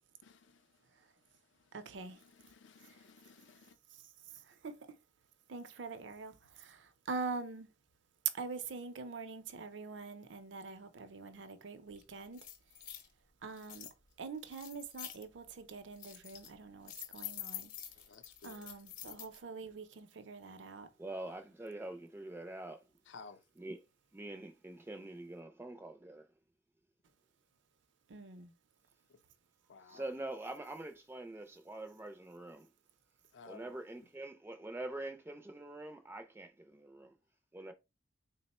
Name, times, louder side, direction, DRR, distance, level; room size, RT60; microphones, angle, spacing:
voice 1, 0.2-0.9 1.2-1.8 2.2-3.8 18.0-18.7 23.1-23.4 29.1-29.2 29.7-30.0 33.3-33.8, left 4 dB, 80° left, 0.5 m, -56 dB
voice 2, 0.8-1.2 1.7-2.2 2.8-3.0 3.9-5.0 5.5-7.7 8.2-13.0 13.4-13.9 14.2-18.1 18.4-20.9 28.1-28.5, right 5 dB, 75° right, 0.5 m, -44 dB
sound 1, 12.0-12.1 12.3-13.1 13.6-13.9 14.5-15.2 15.7-16.5 16.9-19.4, left 11 dB, 45° left, 0.8 m, -47 dB
voice 3, 21.0-22.9 23.6-23.8 24.1-26.3 29.8-32.7 33.5-37.1 37.5-37.7, right 2 dB, 10° right, 0.3 m, -45 dB
3.6 x 2.0 x 4.1 m
head